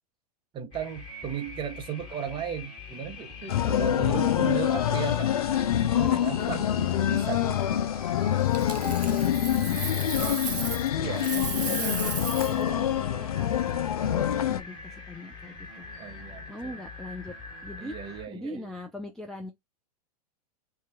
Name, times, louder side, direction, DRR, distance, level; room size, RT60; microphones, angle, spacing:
voice 1, 0.5-5.3 5.8-7.6 11.0-11.5 16.0-16.7 17.8-18.7, right 9 dB, 25° right, 0.7 m, -36 dB
sound 1, 0.7-18.3, left 3 dB, 25° left, 1.8 m, -44 dB
sound 2, 3.5-14.6, left 10 dB, 65° left, 0.4 m, -26 dB
voice 2, 3.6-4.7 6.0-6.6 8.7-10.7 11.3-12.0 12.4-15.9 16.5-17.3 17.6-19.5, left 1 dB, ahead, 0.4 m, -41 dB
Coin (dropping), 8.5-10.9 11.2-12.6 15.4-15.7, right 6 dB, 85° right, 0.5 m, -35 dB
2.7 x 2.3 x 3.9 m
figure-of-eight pair, 100°, 20 cm